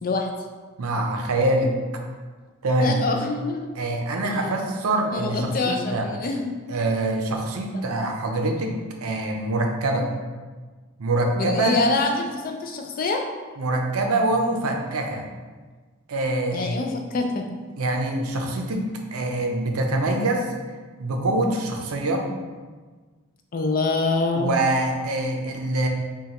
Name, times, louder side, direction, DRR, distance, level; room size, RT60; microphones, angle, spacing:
voice 1, 0.8-1.7 2.6-3.0 3.7-6.1 6.7-10.1 11.0-11.8 13.6-15.2 16.1-16.8 17.8-20.5 21.0-22.2 24.3-25.9, right 2 dB, 90° right, 2 dB, 0.6 m, -24 dB
voice 2, 2.8-3.7 4.4-4.6 5.1-6.6 11.4-13.2 16.5-17.4 23.5-24.5, left 3 dB, 40° left, 3 dB, 0.4 m, -25 dB
5.5 x 2.3 x 2.9 m, 1.4 s
head